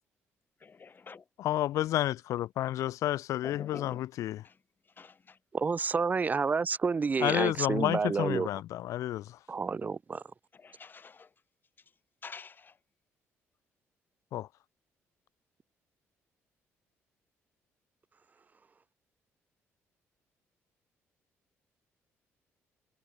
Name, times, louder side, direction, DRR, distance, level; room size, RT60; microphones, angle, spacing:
voice 1, 0.6-1.3 3.4-4.0 4.4-4.6 4.9-5.4 10.5-11.3 12.2-12.8, left 5 dB, 35° left, 7.3 m, -47 dB
voice 2, 1.4-4.4 7.2-9.4 14.3-14.5, left 13 dB, 75° left, 0.6 m, -30 dB
voice 3, 5.5-8.5 9.5-10.2, right 5 dB, 30° right, 0.5 m, -29 dB
cardioid pair, 80°, 5 cm